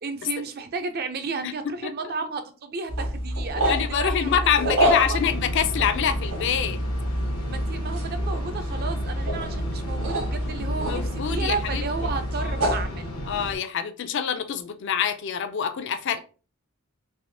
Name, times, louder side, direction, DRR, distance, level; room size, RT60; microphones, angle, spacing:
voice 1, 0.0-4.3 4.7-5.2 7.5-13.2, right 4 dB, 45° right, 0.4 m, -33 dB
sound 1, 2.9-12.9, equal, 75° right, 1.4 m, -28 dB
voice 2, 3.5-6.8 10.8-11.8 12.4-12.7 13.3-16.2, left 8 dB, 55° left, 0.4 m, -26 dB
sound 2, 5.1-13.6, left 1 dB, 85° left, 0.9 m, -35 dB
3.4 x 2.8 x 2.6 m
head